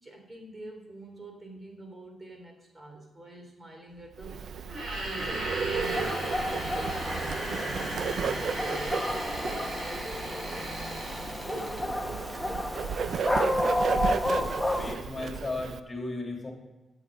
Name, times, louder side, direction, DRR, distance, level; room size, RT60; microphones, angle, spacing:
voice 1, 0.0-4.7 5.0-10.8 11.3-13.8, right 2 dB, 35° right, 2 dB, 3.5 m, -46 dB
Bird, 4.2-15.8, right 6 dB, 70° right, 0.6 m, -35 dB
sound 1, 4.6-11.9, right 1 dB, 50° right, 4.7 m, -36 dB
Dog, 5.8-15.0, left 1 dB, 5° left, 1.3 m, -31 dB
voice 2, 14.8-16.5, left 2 dB, 30° left, 1 dB, 2.8 m, -35 dB
12.5 x 7.9 x 5.1 m, 1.1 s
cardioid pair, 85°, 0 cm